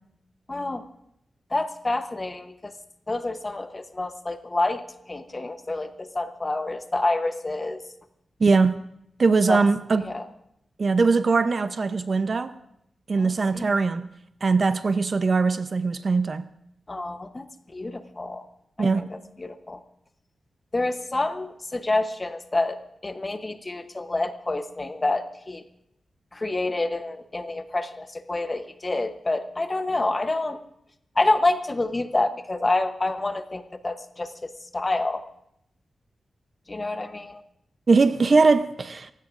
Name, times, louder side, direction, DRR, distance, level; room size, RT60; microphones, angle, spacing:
voice 1, 0.5-0.8 1.5-2.7 3.1-4.8 5.1-7.8 9.5-9.6 10.0-10.3 13.2-13.7 16.9-18.5 18.8-19.8 20.7-22.8 23.0-25.6 26.3-30.6 31.2-35.2 36.7-37.4, left 2 dB, 20° left, 0.9 m, -28 dB
voice 2, 8.4-8.8 9.2-10.0 10.8-12.5 13.1-14.1 14.4-16.5 18.8-19.1 37.9-39.1, right 4 dB, 40° right, 0.6 m, -21 dB
28.0 x 16.0 x 2.5 m
wide cardioid pair, 150°, 0 cm